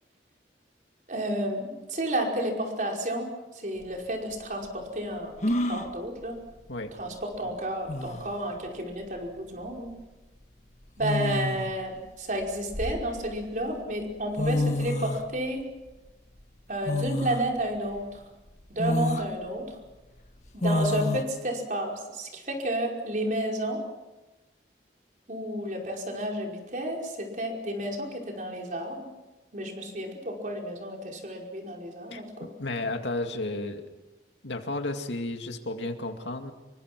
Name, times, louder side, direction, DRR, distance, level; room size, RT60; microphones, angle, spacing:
voice 1, 1.1-3.3 3.5-5.4 5.7-6.4 7.0-9.9 11.0-15.6 16.7-18.2 18.7-19.8 20.5-23.8 25.3-29.1 29.5-32.5, right 1 dB, 45° right, 0 dB, 5.2 m, -31 dB
sound 1, 3.8-3.9 5.4-5.9 7.4-7.5 7.9-8.4 9.7-9.9 11.0-11.8 12.4-13.4 14.1-14.2 14.4-15.2 16.9-17.5 18.0-18.1 18.8-19.3 20.6-21.2, left 1 dB, 40° left, 1.7 m, -28 dB
voice 2, 32.6-33.8 34.4-36.5, left 2 dB, 85° left, 5 dB, 2.3 m, -32 dB
26.5 x 23.5 x 6.1 m, 1.1 s
head